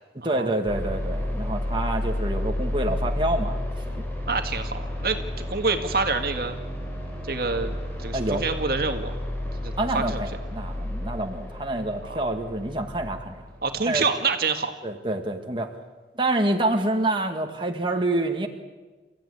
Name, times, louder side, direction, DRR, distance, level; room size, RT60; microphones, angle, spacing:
voice 1, 0.1-3.6 8.1-8.4 9.8-13.5 13.8-14.0 14.8-15.7 16.1-18.5, right 1 dB, 25° right, 3 dB, 1.9 m, -27 dB
sound 1, 0.7-13.7, left 1 dB, 10° left, 4.9 m, -31 dB
voice 2, 4.3-6.6 7.2-9.1 9.4-10.2 12.1-12.2 13.6-14.7, right 4 dB, 55° right, 6 dB, 1.9 m, -27 dB
29.5 x 15.5 x 10.0 m, 1.3 s
head